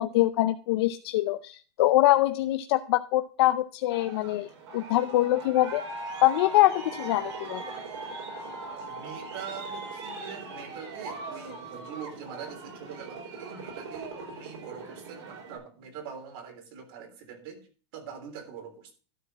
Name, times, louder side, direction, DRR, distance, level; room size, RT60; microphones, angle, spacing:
voice 1, 0.0-5.8 6.2-7.6, left 16 dB, 65° left, 9 dB, 0.6 m, -24 dB
Aircraft, 3.9-15.6, right 3 dB, 75° right, 4.8 m, -40 dB
voice 2, 8.9-17.6 17.9-18.9, right 7 dB, 55° right, 5 dB, 3.5 m, -43 dB
12.5 x 4.7 x 7.3 m, 0.38 s
supercardioid pair, 155°, 14 cm